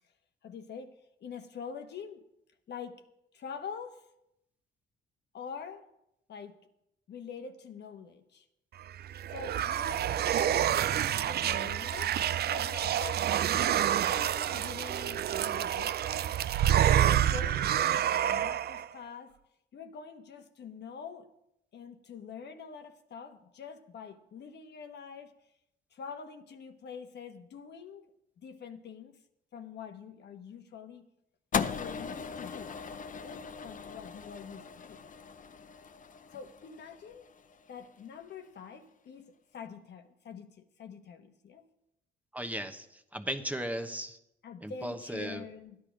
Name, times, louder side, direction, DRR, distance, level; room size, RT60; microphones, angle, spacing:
voice 1, 0.4-2.3 2.7-3.0 3.3-4.0 5.3-5.9 6.3-6.6 7.1-8.4 9.3-12.2 12.5-13.4 14.1-16.0 17.1-19.3 19.7-21.3 21.7-25.4 25.9-28.1 28.4-29.2 29.5-31.0 31.8-32.8 33.2-35.0 36.3-37.3 37.7-41.7 44.4-45.8, left 6 dB, 60° left, 1.1 m, -45 dB
sound 1, 8.9-18.9, right 10 dB, 55° right, 0.4 m, -28 dB
sound 2, 31.5-37.9, left 6 dB, 40° left, 0.7 m, -38 dB
voice 2, 42.3-42.8 43.1-44.2 44.6-45.4, equal, 5° right, 1.0 m, -36 dB
13.5 x 10.5 x 5.1 m
cardioid pair, 90°, 20 cm